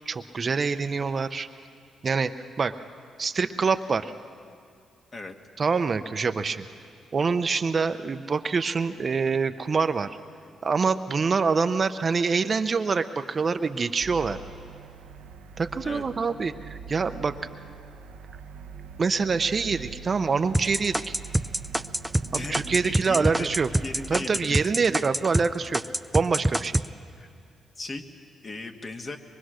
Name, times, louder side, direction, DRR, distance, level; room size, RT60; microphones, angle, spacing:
voice 1, 0.1-1.5 2.0-2.3 2.6-2.7 3.2-4.1 5.6-6.7 7.1-10.2 10.6-14.4 15.6-17.3 19.0-21.1 22.3-23.7 24.1-25.8 26.1-26.8, right 5 dB, 40° right, 10 dB, 0.7 m, -25 dB
sound 1, 14.0-24.2, right 6 dB, 85° right, 0.9 m, -43 dB
sound 2, 20.5-25.5 25.7-26.9, right 1 dB, 10° right, 0.5 m, -25 dB
voice 2, 22.3-23.5 23.8-24.7 27.2-27.3 27.8-28.1 28.4-29.2, left 2 dB, 40° left, 4 dB, 1.8 m, -37 dB
23.5 x 22.5 x 6.4 m, 2.3 s
cardioid pair, 75°, 0 cm